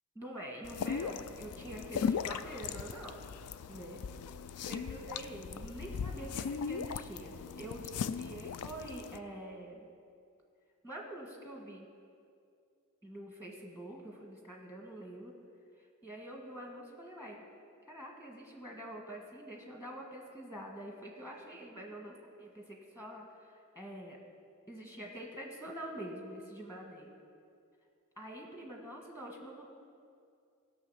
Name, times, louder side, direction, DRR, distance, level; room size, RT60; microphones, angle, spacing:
voice 1, 0.1-3.2 3.7-4.0 4.7-9.8 10.8-11.9 13.0-15.3 16.0-17.4 17.8-24.2 24.7-27.1 28.2-29.7, right 1 dB, 15° left, 0 dB, 1.5 m, -46 dB
sound 1, 0.6-9.2, left 6 dB, 80° left, 0.4 m, -38 dB
17.0 x 6.6 x 5.6 m, 2.4 s
head